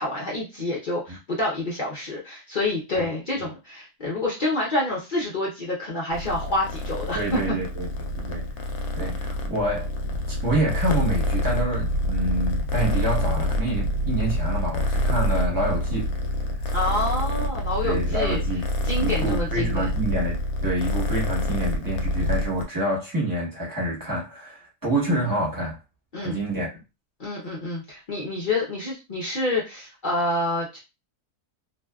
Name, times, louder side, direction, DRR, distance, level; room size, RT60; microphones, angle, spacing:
voice 1, 0.0-7.6 16.7-18.4 18.8-19.9 26.1-26.4 27.2-30.8, left 2 dB, 50° left, -4 dB, 0.6 m, -27 dB
Purr, 6.1-22.6, equal, 75° left, 1.0 m, -26 dB
voice 2, 7.1-7.9 8.1-8.5 9.0-9.9 10.3-16.1 17.8-18.7 19.0-25.8 26.2-26.8, right 1 dB, 15° right, -4 dB, 0.9 m, -27 dB
2.6 x 2.2 x 2.3 m, 0.27 s
omnidirectional pair, 1.6 m